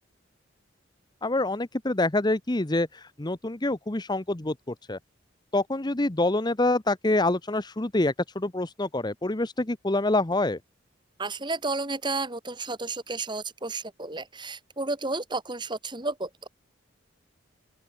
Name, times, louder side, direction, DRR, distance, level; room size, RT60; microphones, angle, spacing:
voice 1, 1.2-5.0 5.5-10.6, left 2 dB, 20° left, 0.9 m, -26 dB
voice 2, 11.2-16.5, right 3 dB, 25° right, 3.7 m, -32 dB
open air
head